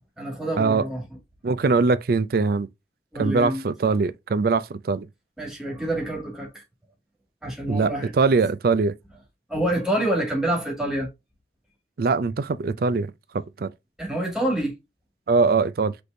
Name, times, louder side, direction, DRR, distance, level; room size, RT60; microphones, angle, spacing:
voice 1, 0.2-1.0 3.1-3.6 5.4-6.6 7.4-8.1 9.5-11.1 14.0-14.7, right 1 dB, 5° right, 2.0 m, -27 dB
voice 2, 1.4-2.7 3.2-5.1 7.7-8.9 12.0-13.7 15.3-15.9, right 4 dB, 55° right, 0.4 m, -22 dB
6.0 x 3.3 x 2.6 m
head